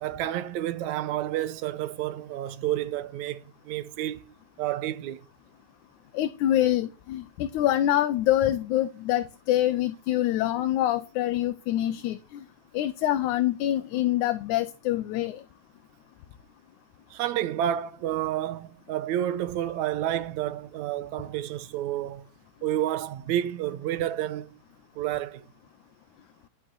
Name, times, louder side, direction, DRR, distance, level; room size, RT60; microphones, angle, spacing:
voice 1, 0.0-5.2 17.1-22.2 22.6-24.6 25.0-25.4, right 12 dB, 75° right, 2.1 m, -30 dB
voice 2, 6.1-12.5 12.7-15.4, left 13 dB, 80° left, 2.2 m, -25 dB
11.5 x 6.3 x 6.3 m
omnidirectional pair, 3.5 m